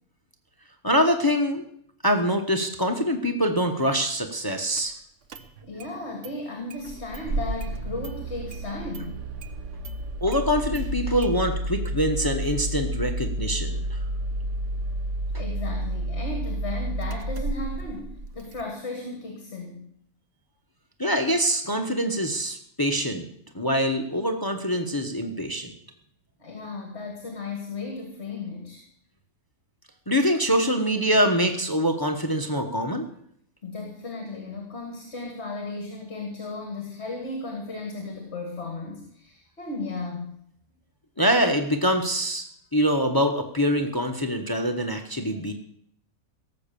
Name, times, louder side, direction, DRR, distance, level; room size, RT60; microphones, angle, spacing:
voice 1, 0.8-1.6 2.0-4.9 10.2-13.8 21.0-23.3 23.5-25.7 30.1-33.0 41.2-42.4 42.7-45.5, equal, 15° left, 6 dB, 1.0 m, -24 dB
Engine starting, 4.8-4.9 5.3-5.9 6.2-6.3 6.7-18.6, right 1 dB, 60° right, 1.2 m, -31 dB
voice 2, 5.6-9.2 15.4-19.8 26.4-28.8 33.6-40.3, left 3 dB, 50° left, 2 dB, 2.3 m, -35 dB
17.5 x 7.6 x 6.9 m, 0.67 s
omnidirectional pair, 1.5 m